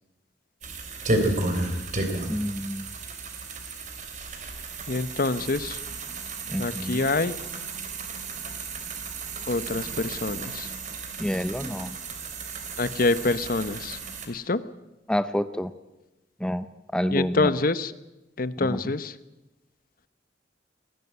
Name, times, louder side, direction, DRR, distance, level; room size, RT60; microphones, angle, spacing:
sound 1, 0.6-14.3, right 2 dB, 45° right, 3.3 m, -33 dB
voice 1, 2.3-2.9 6.5-7.0 11.2-12.0 15.1-15.7 16.4-16.7 16.9-17.5 18.7-18.8, equal, 5° left, 12 dB, 0.6 m, -28 dB
voice 2, 4.9-5.8 6.6-7.4 9.5-10.7 12.8-14.0 14.3-14.6 17.1-17.9 18.4-19.2, left 3 dB, 50° left, 15 dB, 0.9 m, -26 dB
19.5 x 15.0 x 9.5 m, 1.0 s
head